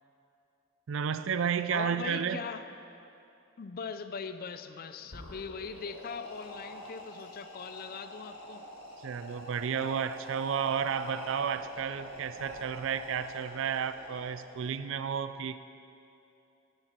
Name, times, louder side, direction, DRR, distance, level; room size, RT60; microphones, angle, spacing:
voice 1, 0.9-2.4 9.0-15.6, right 7 dB, 65° right, 12 dB, 0.4 m, -32 dB
voice 2, 1.7-2.6 3.6-8.7, left 5 dB, 45° left, 10 dB, 0.4 m, -40 dB
sound 1, 5.0-14.7, equal, 85° left, 1.5 m, -46 dB
10.5 x 9.0 x 4.4 m, 2.8 s
head